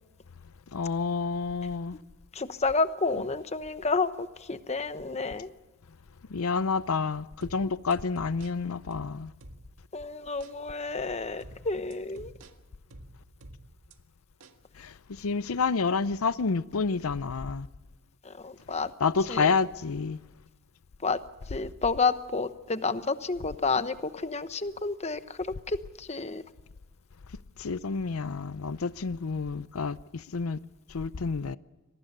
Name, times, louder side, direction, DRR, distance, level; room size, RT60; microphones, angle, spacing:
voice 1, 0.7-2.0 6.3-9.3 14.8-17.7 19.0-20.2 27.6-30.6 30.9-31.6, left 4 dB, 85° left, 0.6 m, -29 dB
voice 2, 2.3-5.5 9.9-12.3 18.2-18.9 19.3-19.6 21.0-21.2 21.5-26.4, left 4 dB, 30° left, 1.0 m, -30 dB
sound 1, 7.4-9.9 10.4-10.6 11.4-14.0 14.4-14.6, right 1 dB, 85° right, 1.8 m, -49 dB
26.0 x 19.5 x 6.7 m
head